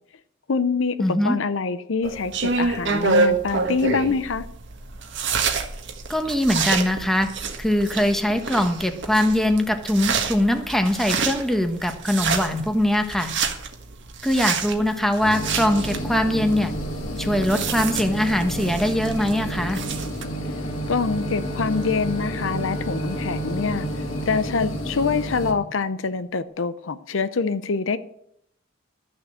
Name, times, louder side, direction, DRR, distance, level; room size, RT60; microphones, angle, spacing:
voice 1, 0.5-1.0 1.2-4.5 20.9-23.9 24.3-28.0, left 4 dB, 75° left, 13 dB, 0.6 m, -25 dB
voice 2, 1.0-1.4 6.1-7.3 7.6-13.3 14.2-16.7 17.2-19.8, left 1 dB, ahead, 6 dB, 1.2 m, -22 dB
sound 1, 2.0-20.2, right 4 dB, 65° right, 1.5 m, -28 dB
sound 2, 15.2-25.5, equal, 90° left, 2.3 m, -31 dB
Bowed string instrument, 20.2-25.9, equal, 30° left, 1.8 m, -36 dB
13.0 x 6.7 x 7.6 m, 0.73 s
head